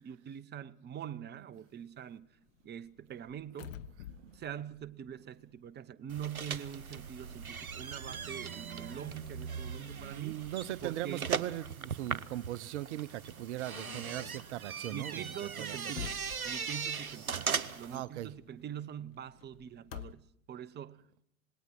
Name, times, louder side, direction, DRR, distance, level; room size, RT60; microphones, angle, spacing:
voice 1, 0.0-2.3 2.6-3.8 4.3-10.4 10.8-11.4 14.9-21.2, right 9 dB, 25° right, 1.0 m, -44 dB
sound 1, 1.5-6.0 6.2-20.1, left 11 dB, 65° left, 1.2 m, -52 dB
sound 2, 6.1-18.0, right 6 dB, 85° right, 1.0 m, -39 dB
voice 2, 10.1-15.3 15.6-15.8 17.9-18.3, right 14 dB, 55° right, 1.0 m, -39 dB
26.5 x 20.0 x 6.1 m
figure-of-eight pair, 85°, 42 cm